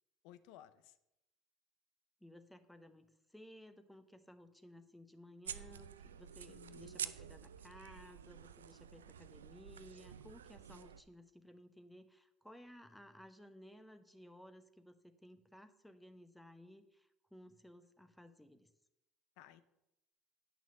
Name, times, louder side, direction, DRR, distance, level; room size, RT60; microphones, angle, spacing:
voice 1, 0.2-1.0 6.5-7.0 19.4-19.6, left 12 dB, 65° left, 15 dB, 0.7 m, -58 dB
voice 2, 2.2-18.7, equal, 5° left, 9 dB, 1.0 m, -58 dB
sound 1, 5.4-11.0, right 8 dB, 85° right, 0.4 m, -49 dB
8.8 x 6.1 x 6.4 m, 0.89 s
hypercardioid pair, 70°, 0 cm